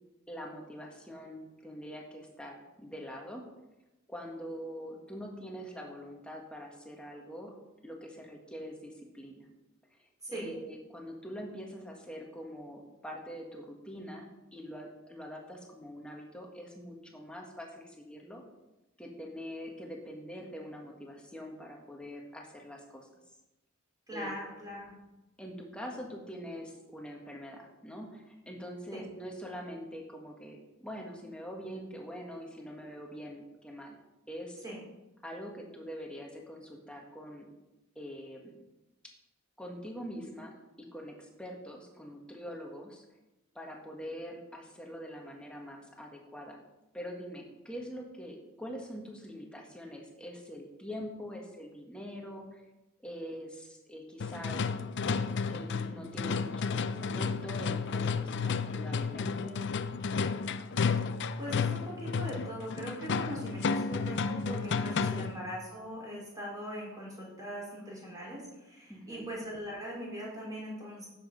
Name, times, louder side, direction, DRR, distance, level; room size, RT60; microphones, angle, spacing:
voice 1, 0.3-3.5 4.1-7.5 7.8-9.5 10.3-18.4 19.0-23.1 24.1-24.3 25.4-34.0 34.3-34.6 35.2-37.5 37.9-38.5 39.6-43.0 43.5-46.6 46.9-52.6 53.0-54.7 55.5-59.6 68.9-69.3, equal, 5° left, 0 dB, 1.7 m, -44 dB
voice 2, 24.1-24.9 28.9-29.0 34.6-34.8 61.4-71.1, equal, 15° right, -4 dB, 3.7 m, -41 dB
sound 1, 54.2-65.4, left 5 dB, 55° left, 0.5 m, -32 dB
10.5 x 7.4 x 5.2 m, 1.0 s
head